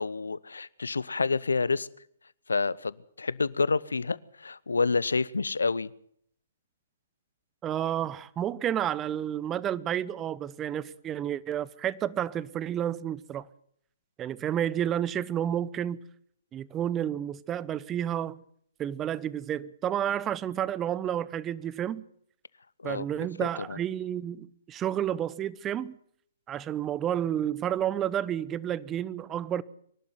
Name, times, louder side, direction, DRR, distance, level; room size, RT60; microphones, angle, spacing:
voice 1, 0.0-1.9 2.5-5.9 22.8-23.1 23.4-23.8, left 4 dB, 80° left, 0.8 m, -28 dB
voice 2, 7.6-13.5 14.2-16.0 16.5-18.4 18.8-22.0 22.8-26.0 26.5-29.6, right 10 dB, 20° right, 0.9 m, -30 dB
24.5 x 12.0 x 9.5 m
figure-of-eight pair, 125°, 0 cm